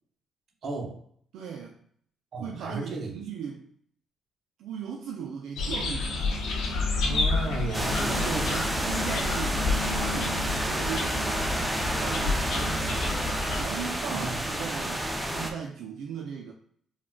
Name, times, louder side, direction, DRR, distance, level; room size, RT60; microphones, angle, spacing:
voice 1, 0.6-1.0 2.3-3.2 7.0-8.7 12.6-13.1 14.1-14.4, right 2 dB, 60° right, 1 dB, 0.7 m, -35 dB
voice 2, 1.3-1.8 2.4-3.7 4.6-6.5 7.1-7.3 8.0-11.5 12.0-12.9 13.5-16.5, right 7 dB, 85° right, 0 dB, 0.3 m, -38 dB
sound 1, 5.6-13.6, left 3 dB, 80° left, 0.6 m, -30 dB
sound 2, 7.7-15.5, right 1 dB, 5° right, 0.5 m, -30 dB
sound 3, 9.2-12.7 13.0-13.3 13.6-13.7, left 1 dB, 20° left, 0.9 m, -48 dB
3.6 x 2.2 x 2.2 m, 0.62 s
cardioid pair, 90°, 0 cm